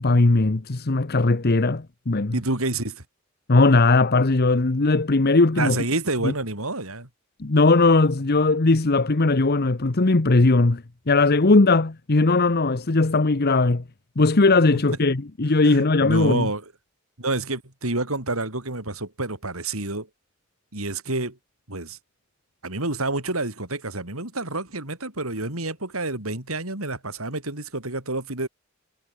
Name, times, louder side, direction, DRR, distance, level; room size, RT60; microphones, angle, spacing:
voice 1, 0.0-2.4 3.5-5.8 6.2-6.3 7.4-13.8 14.2-16.5, left 3 dB, 50° left, 1.0 m, -19 dB
voice 2, 2.3-3.0 5.5-7.1 15.6-16.6 17.2-20.1 20.7-21.4 21.7-22.0 22.6-28.5, right 2 dB, 90° right, 5.8 m, -28 dB
head